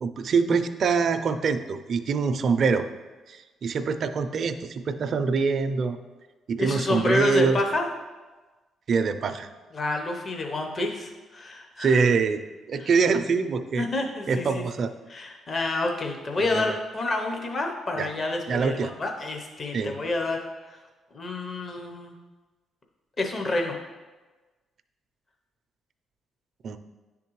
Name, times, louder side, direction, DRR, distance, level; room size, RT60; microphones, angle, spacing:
voice 1, 0.0-2.9 3.3-6.0 6.5-7.6 8.9-9.5 11.8-13.9 14.3-14.9 16.4-16.6 18.0-18.1 18.5-18.9 19.7-19.9 26.6-26.8, right 5 dB, 55° right, 9 dB, 0.4 m, -24 dB
voice 2, 6.6-7.9 9.7-12.0 12.8-13.0 13.7-14.6 15.1-20.8 21.1-22.2 23.2-23.8, left 2 dB, 40° left, 2 dB, 0.7 m, -29 dB
10.0 x 3.6 x 3.1 m, 1.3 s
cardioid pair, 90°, 0 cm